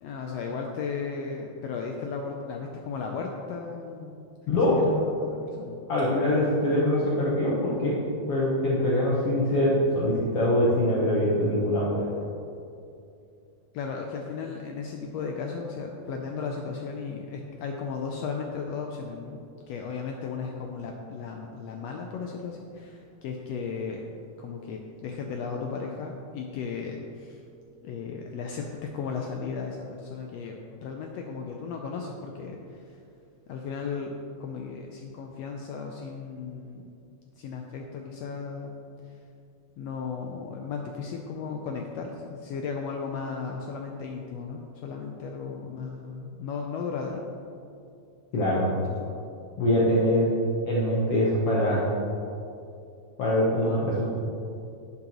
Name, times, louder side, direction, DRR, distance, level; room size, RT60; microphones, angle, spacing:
voice 1, 0.0-5.8 13.7-19.4 19.7-24.1 24.4-27.4 27.8-33.0 33.5-34.1 34.4-36.9 37.4-38.7 39.8-47.2 49.1-49.2, left 5 dB, 80° left, 1 dB, 1.5 m, -35 dB
voice 2, 5.9-8.0 8.3-12.1 48.3-48.7 49.6-50.3 50.6-51.9 53.2-54.0, left 1 dB, 60° left, -6 dB, 1.8 m, -23 dB
11.0 x 7.6 x 3.0 m, 2.6 s
omnidirectional pair, 3.5 m